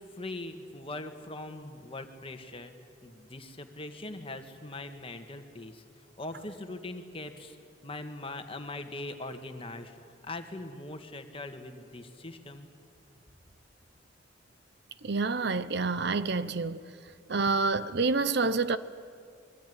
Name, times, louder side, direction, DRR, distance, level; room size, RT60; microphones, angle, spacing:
voice 1, 0.0-2.7 3.0-5.8 6.2-7.6 7.8-10.0 10.2-12.7, left 2 dB, 30° left, 1.8 m, -41 dB
voice 2, 15.0-16.8 17.3-18.8, right 3 dB, 65° right, 0.8 m, -28 dB
25.5 x 22.0 x 9.6 m
head